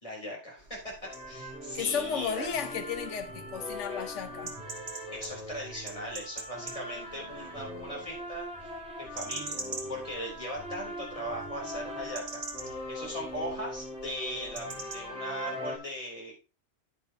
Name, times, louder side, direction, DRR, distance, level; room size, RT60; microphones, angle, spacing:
voice 1, 0.0-2.6 5.1-8.5 9.0-12.4 12.9-16.4, equal, 30° left, 3.9 m, -39 dB
sound 1, 0.6-15.1, right 3 dB, 75° right, 1.7 m, -46 dB
sound 2, 1.0-15.8, equal, 5° right, 3.5 m, -41 dB
voice 2, 1.7-4.5, left 7 dB, 85° left, 1.1 m, -33 dB
9.8 x 9.5 x 2.9 m
omnidirectional pair, 1.2 m